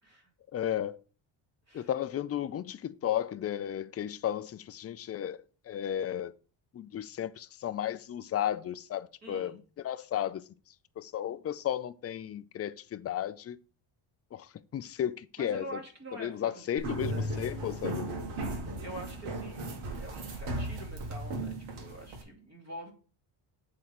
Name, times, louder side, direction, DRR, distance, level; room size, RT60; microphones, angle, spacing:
voice 1, 0.5-1.0 1.7-6.3 6.7-9.6 9.8-10.5 11.0-13.6 14.3-15.8 16.1-18.1, left 10 dB, 30° left, 0.5 m, -34 dB
voice 2, 9.2-9.6 15.4-17.5 18.4-19.7 20.0-22.9, right 1 dB, 30° right, 2.6 m, -46 dB
sound 1, 16.8-22.2, right 1 dB, 75° right, 2.1 m, -36 dB
7.7 x 3.9 x 5.8 m
cardioid pair, 110°, 50 cm